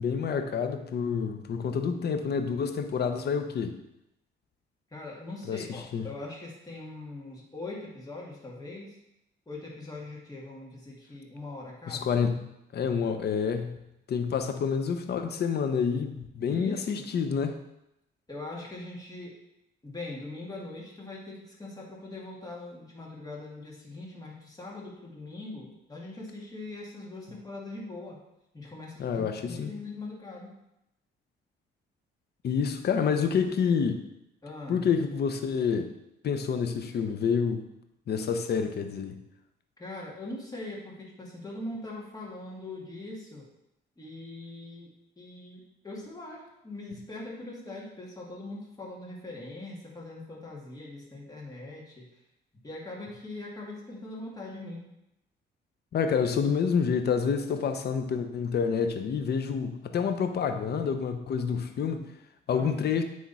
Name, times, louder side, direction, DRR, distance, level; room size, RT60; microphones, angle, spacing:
voice 1, 0.0-3.7 5.5-6.0 11.9-13.8 14.1-17.6 29.0-29.7 32.4-34.0 34.7-35.9 36.2-37.7 38.1-39.2 55.9-62.0 62.5-63.0, left 6 dB, 55° left, 7 dB, 0.8 m, -28 dB
voice 2, 4.9-9.0 9.5-12.1 16.4-17.1 18.3-19.3 19.8-28.2 28.5-30.5 34.4-34.9 39.8-43.4 44.0-44.9 45.2-52.1 52.6-54.8 62.5-62.8, left 2 dB, 20° left, -4 dB, 2.1 m, -41 dB
9.6 x 3.7 x 4.1 m, 0.85 s
cardioid pair, 90°, 20 cm